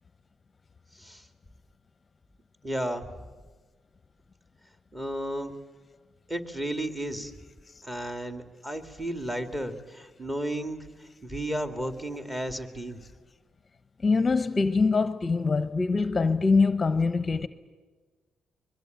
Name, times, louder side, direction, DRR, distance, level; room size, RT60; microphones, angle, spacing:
voice 1, 2.6-3.1 4.9-5.5 6.3-7.3 7.8-10.8 11.2-13.0 17.4-17.5, right 1 dB, 15° right, 2.2 m, -33 dB
voice 2, 14.0-17.5, left 4 dB, 30° left, 0.8 m, -23 dB
24.0 x 21.5 x 9.2 m
cardioid pair, 90°, 0 cm